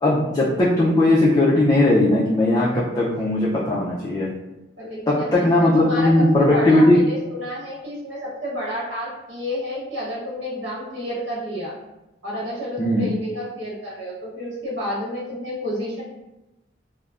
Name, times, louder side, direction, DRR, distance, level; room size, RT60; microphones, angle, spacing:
voice 1, 0.0-4.3 5.1-7.0 12.8-13.1, left 1 dB, 20° left, -6 dB, 0.4 m, -18 dB
voice 2, 4.8-11.7 12.2-16.0, equal, 75° right, -7 dB, 1.0 m, -30 dB
3.2 x 2.0 x 2.4 m, 0.99 s
head